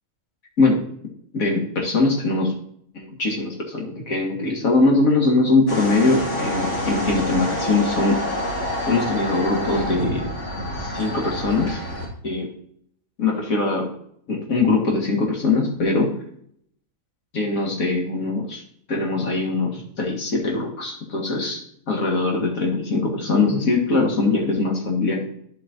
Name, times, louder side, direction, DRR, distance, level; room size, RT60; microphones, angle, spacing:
voice 1, 1.3-2.6 2.9-8.2 8.9-10.3 10.9-11.8 12.2-12.5 13.2-13.9 14.3-16.1 17.3-18.6 18.9-21.6 21.9-25.2, left 3 dB, 80° left, 0 dB, 2.2 m, -21 dB
sound 1, 5.7-12.1, equal, 60° left, 2.6 m, -27 dB
11.5 x 6.5 x 2.6 m, 0.66 s
omnidirectional pair, 1.4 m